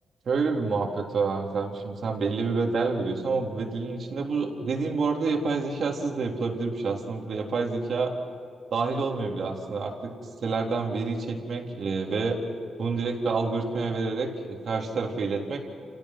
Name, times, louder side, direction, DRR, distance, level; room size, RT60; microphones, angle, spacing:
voice 1, 0.3-8.1 8.7-10.1 10.4-12.4 12.8-15.6, right 4 dB, 60° right, 1 dB, 3.6 m, -28 dB
30.0 x 17.5 x 6.1 m, 2.6 s
cardioid pair, 105°, 0 cm